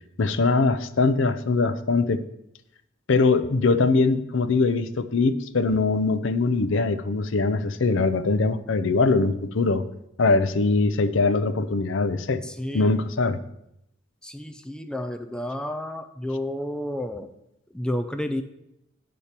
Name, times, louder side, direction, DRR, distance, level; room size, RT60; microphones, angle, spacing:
voice 1, 0.2-2.2 3.1-9.8 10.2-12.4 12.7-13.4, left 3 dB, 65° left, 11 dB, 0.6 m, -22 dB
voice 2, 12.4-12.9 14.2-17.3 17.7-18.4, left 1 dB, 5° left, 7 dB, 0.4 m, -31 dB
8.5 x 4.4 x 6.6 m, 0.82 s
head